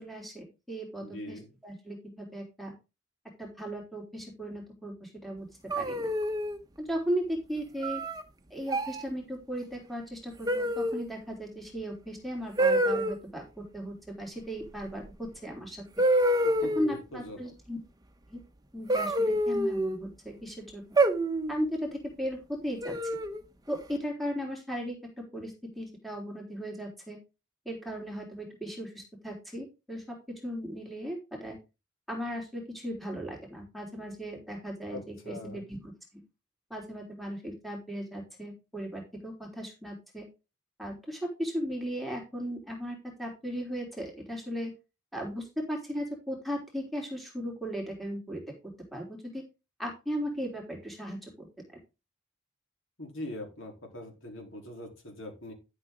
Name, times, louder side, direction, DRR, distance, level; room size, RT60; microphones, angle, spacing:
voice 1, 0.0-2.7 3.4-5.5 5.8-6.1 6.8-8.0 8.5-15.9 16.8-17.8 18.3-18.4 18.7-21.0 21.5-23.0 23.7-27.2 27.7-31.6 32.1-35.9 36.7-40.3 40.8-44.7 45.1-48.4 48.9-49.4 49.8-51.5, equal, ahead, 0 dB, 3.5 m, -37 dB
voice 2, 1.0-1.5 16.4-17.5 34.9-35.6 53.0-55.5, left 1 dB, 75° left, 2 dB, 4.0 m, -42 dB
sound 1, 5.7-6.6 7.8-8.2 8.7-9.0 10.5-11.1 12.6-13.2 15.1-15.2 16.0-17.0 18.9-20.0 21.0-21.6 22.8-23.4, right 1 dB, 20° right, 1.1 m, -27 dB
12.0 x 6.8 x 3.9 m, 0.27 s
head